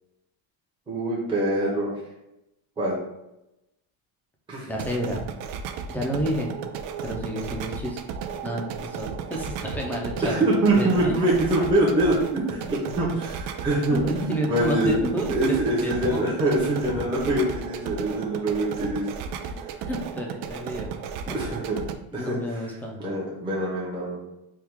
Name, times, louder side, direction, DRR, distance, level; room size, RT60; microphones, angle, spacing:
voice 1, 0.9-1.9 2.8-3.0 4.5-4.7 10.2-14.0 14.5-14.9 15.3-19.1 21.3-21.8 22.1-22.7 23.0-24.2, right 1 dB, 10° right, -5 dB, 0.7 m, -24 dB
voice 2, 4.7-5.2 5.9-6.5 7.0-8.0 8.4-10.4 10.7-11.1 13.9-15.6 15.8-16.2 19.8-20.9 21.3-21.4 22.1-23.0, equal, 5° left, -1 dB, 0.3 m, -30 dB
Digital Melt, 4.7-21.9, right 7 dB, 85° right, 0.5 m, -35 dB
3.5 x 2.3 x 4.4 m, 0.89 s
cardioid pair, 160°, 42 cm